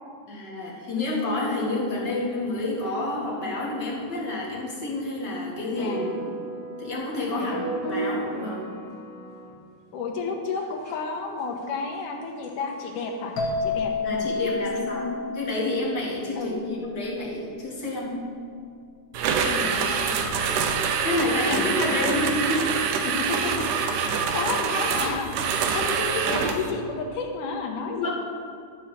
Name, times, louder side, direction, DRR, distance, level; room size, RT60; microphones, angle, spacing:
voice 1, 0.3-6.4 6.8-7.6 7.9-8.7 14.0-18.2 19.4-20.4 21.0-22.9 25.6-25.8 27.9-28.1, left 2 dB, 40° left, -4 dB, 2.2 m, -29 dB
sound 1, 5.7-9.6 10.6-11.0 11.6-11.7 12.0-12.1 12.4-12.5 12.8-13.0 14.8-14.9, right 2 dB, 25° left, 2.4 m, -34 dB
voice 2, 5.8-6.2 7.3-7.7 9.9-13.3 13.6-15.3 16.4-16.5 19.6-19.8 21.5-22.1 23.0-25.3 25.7-28.1, left 4 dB, 90° left, 1 dB, 2.6 m, -32 dB
sound 2, 13.4-17.0, left 3 dB, 70° left, 2.8 m, -30 dB
sound 3, 19.1-26.7, right 6 dB, 80° right, 2.2 m, -25 dB
12.5 x 4.6 x 7.4 m, 2.2 s
omnidirectional pair, 3.5 m